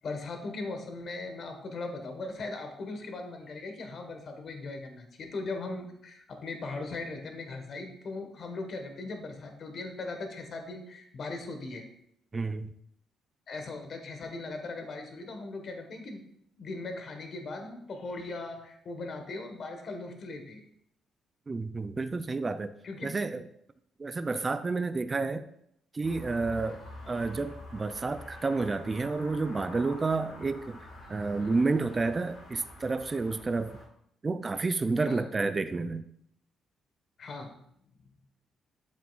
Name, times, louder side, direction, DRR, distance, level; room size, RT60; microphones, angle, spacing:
voice 1, 0.0-11.8 13.5-16.2 16.6-20.6 22.8-23.1 35.0-35.2 37.2-37.5, left 3 dB, 55° left, 5 dB, 1.4 m, -39 dB
voice 2, 12.3-12.7 21.5-22.7 23.0-23.4 24.0-25.4 25.9-26.8 27.1-33.8 34.2-36.0, right 3 dB, 30° right, 10 dB, 0.4 m, -30 dB
sound 1, 26.0-33.9, left 1 dB, 80° left, 2.8 m, -47 dB
8.6 x 7.4 x 2.5 m, 0.73 s
cardioid pair, 90°, 0 cm